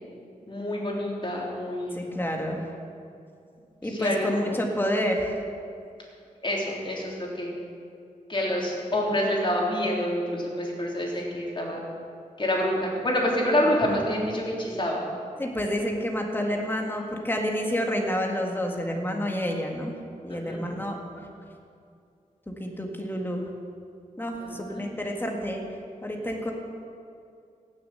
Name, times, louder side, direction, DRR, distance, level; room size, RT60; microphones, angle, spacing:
voice 1, 0.5-2.0 3.8-4.6 6.4-7.5 8.3-11.8 12.4-15.0 20.3-20.6 24.4-24.9, left 1 dB, 35° left, -3 dB, 3.5 m, -27 dB
voice 2, 1.9-2.7 3.8-5.4 15.4-19.9 20.2-21.0 22.5-23.5 24.2-25.6 26.0-26.5, equal, 15° left, 1 dB, 2.0 m, -29 dB
17.0 x 7.2 x 7.9 m, 2.4 s
wide cardioid pair, 100°, 14 cm